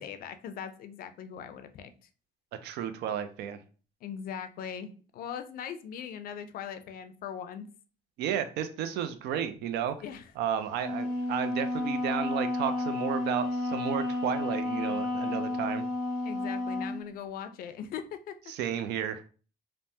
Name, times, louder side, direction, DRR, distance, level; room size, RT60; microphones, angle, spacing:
voice 1, 0.0-1.9 4.0-7.7 10.0-10.3 16.2-18.4, left 8 dB, 60° left, 9 dB, 0.4 m, -40 dB
voice 2, 2.6-3.6 8.2-10.0 10.4-15.8 18.5-19.3, right 9 dB, 80° right, 10 dB, 0.4 m, -32 dB
Wind instrument woodwind instrument, 10.7-17.0, left 2 dB, 50° right, 1.3 m, -31 dB
3.3 x 2.1 x 2.7 m, 0.38 s
cardioid pair, 110°, 17 cm